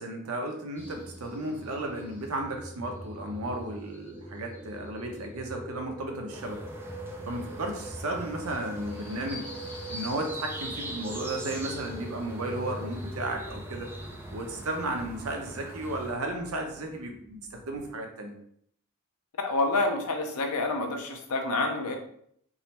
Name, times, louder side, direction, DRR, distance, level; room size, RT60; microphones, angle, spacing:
voice 1, 0.0-6.6 7.2-9.5 9.9-13.9 14.3-18.3, right 1 dB, 80° right, 3 dB, 0.7 m, -34 dB
sound 1, 0.7-17.9, equal, 5° left, 0.8 m, -44 dB
sound 2, 6.3-16.1, right 1 dB, 10° right, 0.4 m, -41 dB
voice 2, 19.4-22.0, left 2 dB, 90° left, 4 dB, 0.7 m, -28 dB
3.7 x 2.0 x 4.3 m, 0.68 s
head